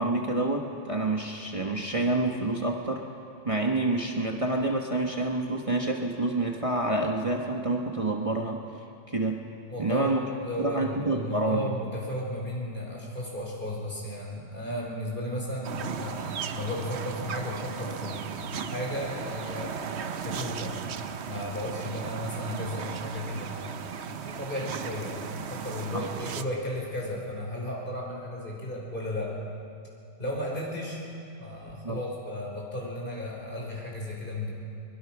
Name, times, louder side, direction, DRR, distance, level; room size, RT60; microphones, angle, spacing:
voice 1, 0.0-3.0 3.4-8.6 9.1-9.4 9.8-10.2 10.6-11.7 25.9-26.0 31.8-32.0, right 2 dB, 30° right, 1 dB, 1.3 m, -28 dB
voice 2, 9.7-10.2 10.4-20.8 21.3-29.4 30.2-31.0 31.4-34.5, left 1 dB, 45° left, -3 dB, 5.3 m, -34 dB
sound 1, 15.6-26.4, right 7 dB, 65° right, 1.1 m, -36 dB
23.0 x 22.0 x 6.0 m, 2.8 s
omnidirectional pair, 1.2 m